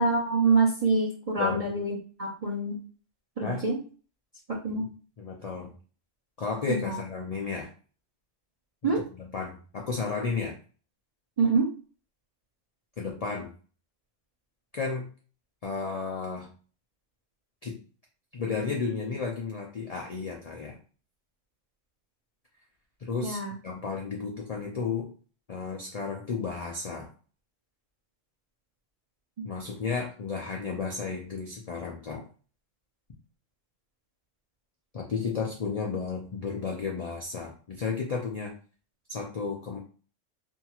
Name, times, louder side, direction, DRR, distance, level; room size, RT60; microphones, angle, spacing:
voice 1, 0.0-2.8 3.4-3.8 4.5-4.8 6.7-7.0 8.8-9.0 11.4-11.7 23.2-23.5 29.4-29.5, right 3 dB, 50° right, -2 dB, 0.4 m, -26 dB
voice 2, 1.4-1.8 3.4-3.6 4.7-4.9 5.2-5.7 6.4-7.7 8.8-8.9 9.2-10.6 13.0-13.5 14.7-15.1 15.6-16.5 17.6-17.8 18.3-20.8 23.0-25.1 25.5-27.1 29.4-32.2 34.9-38.5 39.1-39.8, left 5 dB, 85° left, -1 dB, 0.3 m, -33 dB
2.7 x 2.3 x 2.8 m, 0.39 s
omnidirectional pair, 1.3 m